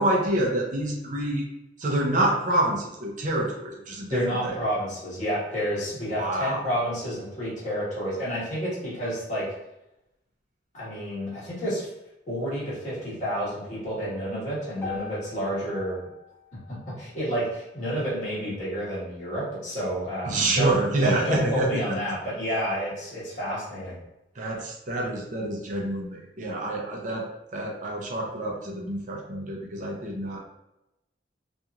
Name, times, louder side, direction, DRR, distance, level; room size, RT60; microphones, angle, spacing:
voice 1, 0.0-1.5 1.8-4.6 6.1-6.6 20.2-22.0 24.3-27.3 27.5-30.4, right 1 dB, 45° right, -1 dB, 0.6 m, -27 dB
voice 2, 4.1-9.5 10.7-11.9 12.3-16.0 16.7-20.7 21.0-24.0, equal, 45° left, -9 dB, 1.4 m, -30 dB
sound 1, 14.8-19.0, left 6 dB, 15° left, 0.6 m, -44 dB
2.8 x 2.5 x 2.3 m, 0.90 s
head